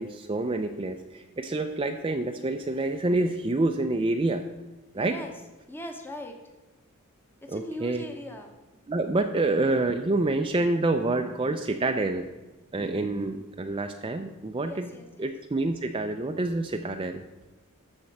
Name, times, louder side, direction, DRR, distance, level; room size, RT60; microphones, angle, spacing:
voice 1, 0.0-4.5 4.9-5.1 7.5-8.0 8.9-12.3 12.7-14.9 15.2-17.2, right 2 dB, 25° right, 5 dB, 0.5 m, -27 dB
voice 2, 4.9-5.3 5.7-6.4 7.4-8.5 14.6-15.3, left 1 dB, 10° left, 3 dB, 0.9 m, -40 dB
13.0 x 4.4 x 7.2 m, 1.1 s
head